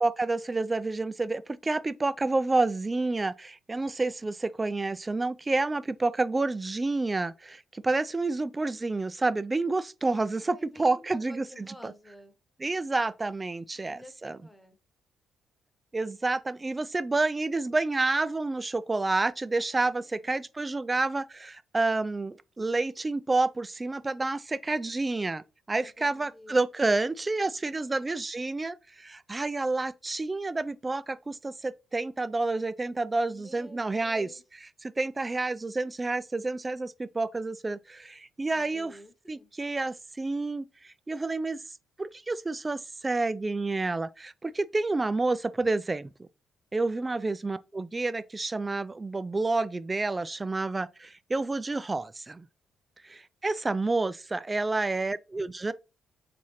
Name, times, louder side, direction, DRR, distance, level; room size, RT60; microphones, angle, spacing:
voice 1, 0.0-11.9 12.6-14.4 15.9-25.4 25.7-34.3 35.0-38.9 39.3-41.6 42.0-46.3 46.7-52.5 53.0-55.7, right 3 dB, 20° right, 0.3 m, -29 dB
voice 2, 10.4-12.3 13.7-14.8 19.9-20.5 25.8-26.6 27.7-28.1 33.1-34.4 38.5-39.5 46.8-47.2, equal, 5° left, 1.0 m, -52 dB
4.2 x 3.7 x 3.1 m
cardioid pair, 90°, 0 cm